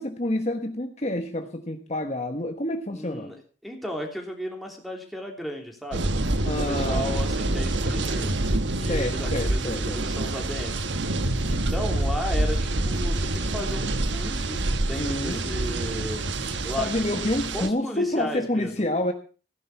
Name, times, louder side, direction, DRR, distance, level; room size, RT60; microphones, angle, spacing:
voice 1, 0.0-3.3 6.5-7.1 8.9-10.0 15.0-15.4 16.8-19.1, left 1 dB, 35° left, 5 dB, 1.2 m, -28 dB
voice 2, 2.9-6.1 6.4-8.4 8.8-11.2 11.4-16.4 16.6-18.7, equal, ahead, 0 dB, 3.2 m, -35 dB
sound 1, 5.9-17.7, right 2 dB, 80° right, 1.3 m, -26 dB
16.0 x 10.5 x 5.9 m, 0.37 s
head